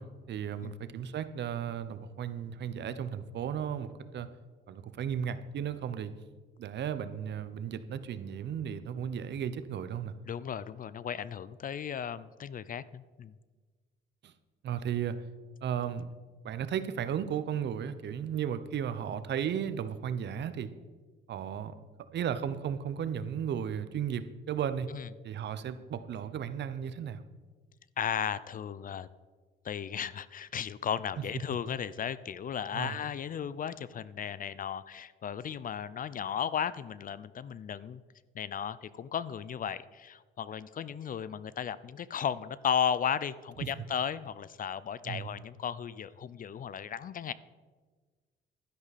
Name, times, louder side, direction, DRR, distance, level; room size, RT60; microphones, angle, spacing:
voice 1, 0.0-4.3 4.7-6.1 6.6-10.2 14.2-14.3 14.6-15.2 15.6-16.1 16.4-20.7 21.3-21.9 22.1-24.9 25.2-27.2 32.7-33.0 43.6-43.7 45.0-45.3, right 8 dB, 60° right, 12 dB, 0.7 m, -35 dB
voice 2, 10.3-13.3 24.9-25.1 28.0-29.1 29.6-38.0 38.4-47.3, left 8 dB, 45° left, 17 dB, 0.5 m, -35 dB
12.0 x 10.5 x 4.1 m, 1.4 s
cardioid pair, 90°, 20 cm